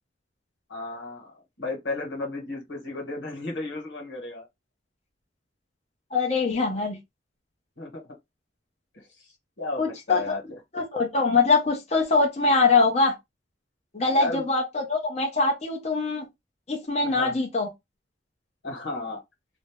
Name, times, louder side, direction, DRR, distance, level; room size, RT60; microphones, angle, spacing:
voice 1, 0.7-1.3 1.6-4.5 6.7-6.8 7.8-8.0 8.9-9.0 9.6-10.6 14.1-14.5 17.0-17.4 18.6-19.2, left 2 dB, 90° left, 1.3 m, -33 dB
voice 2, 6.1-7.0 9.8-10.2 10.7-13.1 13.9-16.3 16.7-17.7, left 3 dB, 35° left, 0.7 m, -23 dB
2.6 x 2.0 x 3.4 m
head